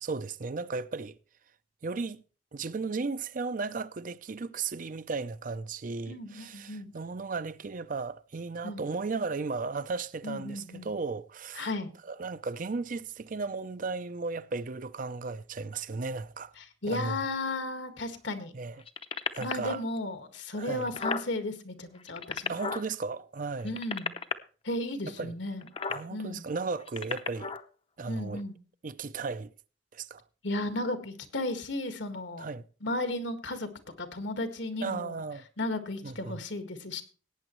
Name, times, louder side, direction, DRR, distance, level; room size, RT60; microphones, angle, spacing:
voice 1, 0.0-1.2 1.8-2.2 2.5-11.7 12.0-16.5 16.8-17.3 18.5-18.8 19.3-19.8 20.5-20.9 22.5-23.8 25.0-25.3 25.9-27.5 28.0-28.4 28.8-29.5 29.9-30.2 32.4-32.6 34.8-35.4 36.0-36.4, right 4 dB, 45° right, 0.5 m, -35 dB
voice 2, 6.1-6.9 8.6-8.8 10.2-10.9 11.6-11.9 16.6-18.5 19.4-22.6 23.6-24.2 24.6-25.7 26.1-26.5 28.1-28.6 30.4-32.5 32.8-33.7 34.0-35.2 35.6-37.0, left 2 dB, 80° left, 1.7 m, -34 dB
sound 1, 18.8-19.7 20.4-20.5 20.7-21.3 22.0-22.9 23.6-24.3 25.6-26.0 26.8-27.6 28.4-28.5, left 5 dB, 30° left, 0.7 m, -33 dB
18.0 x 8.9 x 3.1 m
head